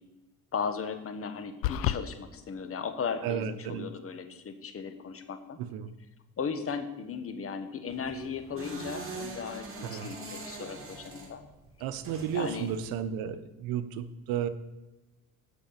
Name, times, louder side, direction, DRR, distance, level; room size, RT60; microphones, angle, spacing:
voice 1, 0.5-5.6 6.4-11.4 12.3-12.7, left 6 dB, 40° left, 8 dB, 1.4 m, -36 dB
sound 1, 1.6-2.0, left 13 dB, 85° left, 0.5 m, -28 dB
voice 2, 3.2-3.9 5.6-5.9 9.8-10.1 11.8-14.5, right 9 dB, 85° right, 12 dB, 0.8 m, -33 dB
sound 2, 7.9-13.0, right 3 dB, 40° right, 2.5 m, -43 dB
8.5 x 6.2 x 7.3 m, 1.0 s
cardioid pair, 95°, 34 cm